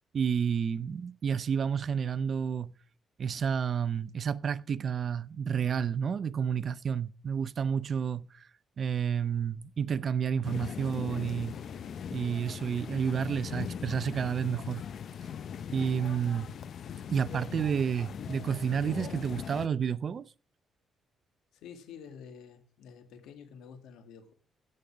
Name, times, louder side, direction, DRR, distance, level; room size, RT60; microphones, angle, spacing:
voice 1, 0.1-2.7 3.2-8.5 8.8-11.6 12.1-14.8 15.7-16.5 17.1-20.3, right 7 dB, 50° right, 0.5 m, -30 dB
sound 1, 10.4-19.7, left 8 dB, 60° left, 0.6 m, -40 dB
voice 2, 21.5-24.3, left 7 dB, 85° left, 1.9 m, -49 dB
16.0 x 5.4 x 6.0 m
cardioid pair, 90°, 0 cm